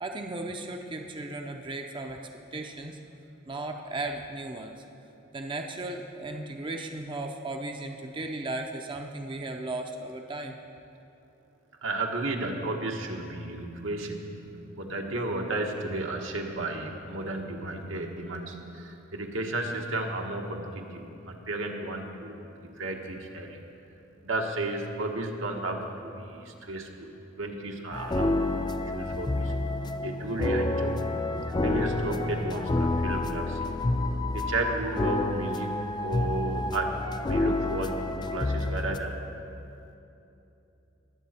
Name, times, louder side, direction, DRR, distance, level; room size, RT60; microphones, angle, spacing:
voice 1, 0.0-3.0 3.5-4.8 5.3-10.5, right 2 dB, 25° right, 3 dB, 0.6 m, -36 dB
voice 2, 11.8-23.6 24.2-27.1 27.4-29.5 30.0-31.0 31.6-33.7 34.3-37.0 37.2-39.2, right 2 dB, 85° right, 1 dB, 1.3 m, -33 dB
sound 1, 27.9-39.0, left 2 dB, 20° left, 0.4 m, -29 dB
21.0 x 7.7 x 4.3 m, 2.8 s
head